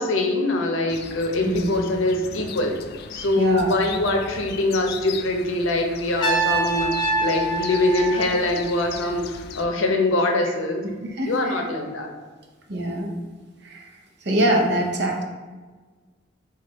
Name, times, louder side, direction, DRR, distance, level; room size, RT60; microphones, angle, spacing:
voice 1, 0.0-2.7 3.1-10.8 11.3-12.1, left 2 dB, 85° left, 3 dB, 0.7 m, -23 dB
sound 1, 0.9-9.6, left 6 dB, 55° left, 0.3 m, -38 dB
voice 2, 3.4-3.7 11.2-11.6 12.7-13.1 13.6-13.9 14.2-15.2, right 1 dB, 60° right, 1 dB, 0.7 m, -23 dB
Trumpet, 6.2-9.2, right 2 dB, 20° left, 0.6 m, -26 dB
4.8 x 2.4 x 4.0 m, 1.4 s
head